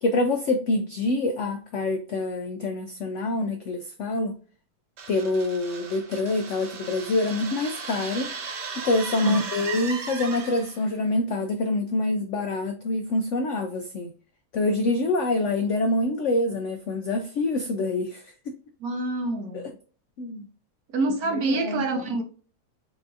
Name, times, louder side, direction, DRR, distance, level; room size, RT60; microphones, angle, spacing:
voice 1, 0.0-4.4 5.1-8.3 8.8-14.1 14.5-18.5 19.5-19.7 20.2-20.4 21.3-21.8, left 2 dB, 75° left, 0.6 m, -26 dB
sound 1, 5.0-10.9, right 5 dB, 90° right, 1.5 m, -36 dB
voice 2, 18.8-19.7 20.9-22.2, right 2 dB, 65° right, 1.2 m, -26 dB
4.6 x 2.6 x 2.4 m
omnidirectional pair, 1.8 m